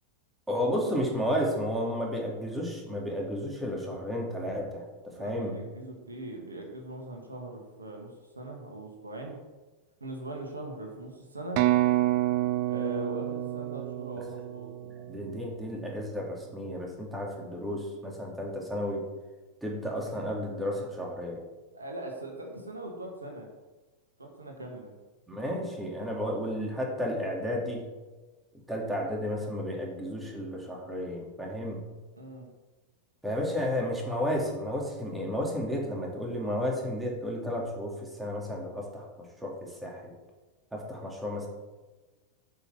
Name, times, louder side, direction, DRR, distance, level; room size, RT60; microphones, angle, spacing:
voice 1, 0.5-5.5 15.0-19.0 19.6-21.4 25.3-27.8 28.7-31.8 33.2-39.0 39.4-40.0 40.7-41.5, equal, 5° right, -2 dB, 2.8 m, -32 dB
voice 2, 5.1-9.4 10.0-11.6 12.6-14.7 21.7-23.5 24.2-25.0 32.1-32.5, right 1 dB, 85° right, 2 dB, 1.8 m, -40 dB
sound 1, 11.6-15.3, right 16 dB, 50° right, 0.5 m, -28 dB
9.7 x 5.6 x 6.0 m, 1.2 s
figure-of-eight pair, 90°, 0 cm